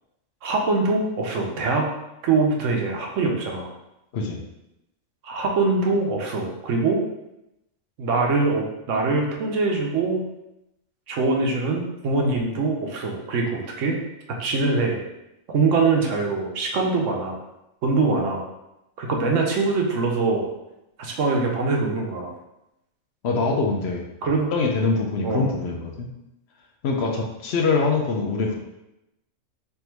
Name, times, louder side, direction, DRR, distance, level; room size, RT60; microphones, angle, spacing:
voice 1, 0.4-1.9 2.2-3.7 5.2-7.0 8.0-10.2 11.1-14.0 14.4-15.0 15.5-17.3 17.8-18.4 19.0-20.5 21.0-22.3 24.2-24.5 25.2-25.5, right 3 dB, 70° right, 1 dB, 1.0 m, -23 dB
voice 2, 23.2-24.0 24.5-26.1 26.8-28.6, left 4 dB, 60° left, 1 dB, 0.8 m, -23 dB
3.4 x 2.6 x 4.4 m, 0.89 s
omnidirectional pair, 1.4 m